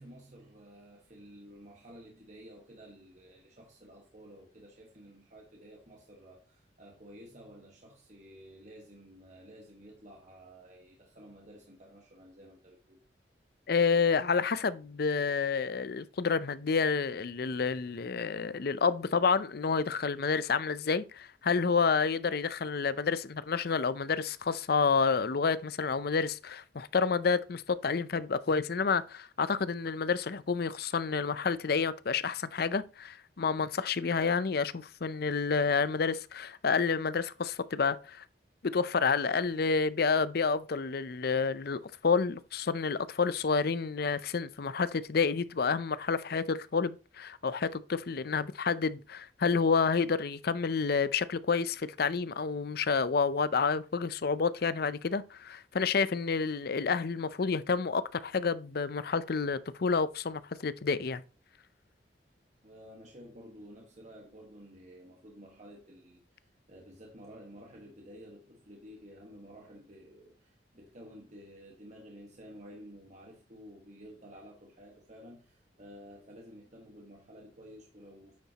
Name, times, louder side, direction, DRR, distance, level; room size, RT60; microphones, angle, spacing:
voice 1, 0.0-13.0 62.6-78.4, equal, 40° right, 1.5 m, -52 dB
voice 2, 13.7-38.2 38.6-61.2, left 5 dB, 60° left, 0.5 m, -29 dB
9.4 x 7.2 x 2.9 m
head